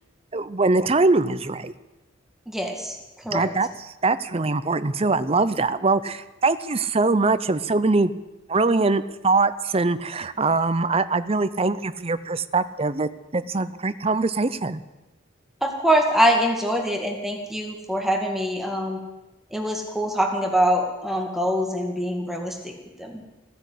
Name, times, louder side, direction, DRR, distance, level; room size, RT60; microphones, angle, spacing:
voice 1, 0.3-1.7 3.3-3.7 4.0-8.1 8.5-14.8, right 3 dB, 30° right, 13 dB, 0.6 m, -22 dB
voice 2, 2.5-3.5 15.6-19.0 19.5-22.7 23.0-23.2, equal, ahead, 2 dB, 1.9 m, -24 dB
15.5 x 10.5 x 8.4 m, 1.0 s
head